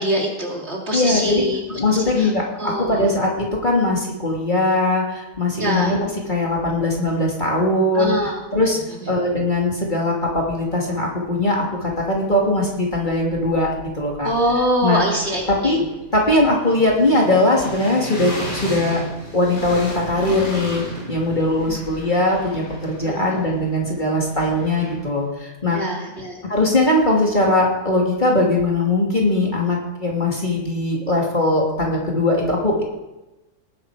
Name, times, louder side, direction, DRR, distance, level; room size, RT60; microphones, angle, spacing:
voice 1, 0.0-2.3 2.6-3.1 5.6-6.0 7.9-8.4 8.9-9.1 14.2-15.8 21.7-21.8 23.0-23.3 25.7-26.4, equal, 45° right, 0 dB, 2.8 m, -24 dB
voice 2, 0.9-1.4 1.8-8.1 8.5-8.8 9.1-13.7 14.0-14.3 14.8-15.0 15.5-15.8 16.1-19.0 19.3-25.8 26.5-32.8, left 2 dB, 30° left, -2 dB, 2.7 m, -20 dB
sound 1, 11.2-11.3 11.6-12.7 13.0-25.2, equal, 55° left, 6.8 m, -36 dB
19.0 x 11.0 x 5.0 m, 1.0 s
omnidirectional pair, 1.6 m